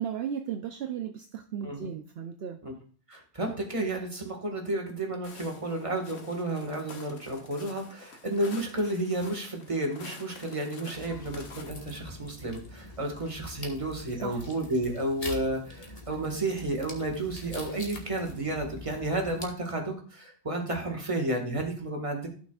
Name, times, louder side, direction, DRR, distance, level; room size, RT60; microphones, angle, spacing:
voice 1, 0.0-2.6 14.2-14.4, right 8 dB, 70° right, 6 dB, 0.8 m, -35 dB
voice 2, 3.1-22.3, right 1 dB, 30° right, 2 dB, 1.7 m, -32 dB
Walk footsteps, 5.2-11.7, left 4 dB, 70° left, 1.4 m, -48 dB
sound 1, 10.9-19.5, left 1 dB, 35° left, 1.4 m, -44 dB
15.0 x 6.0 x 2.4 m, 0.43 s
omnidirectional pair, 1.1 m